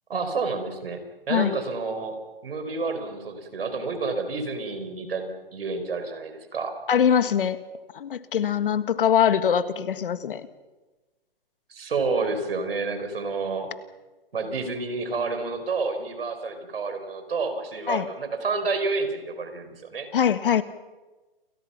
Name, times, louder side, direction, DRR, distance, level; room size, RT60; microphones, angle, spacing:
voice 1, 0.1-1.0 1.3-2.2 2.4-6.7 11.7-13.7 14.3-20.1, right 4 dB, 75° right, 8 dB, 5.3 m, -29 dB
voice 2, 6.9-7.6 7.9-10.5 17.9-18.1 20.1-20.6, left 8 dB, 65° left, 12 dB, 1.8 m, -22 dB
29.5 x 22.5 x 5.9 m, 1.2 s
hypercardioid pair, 135°, 29 cm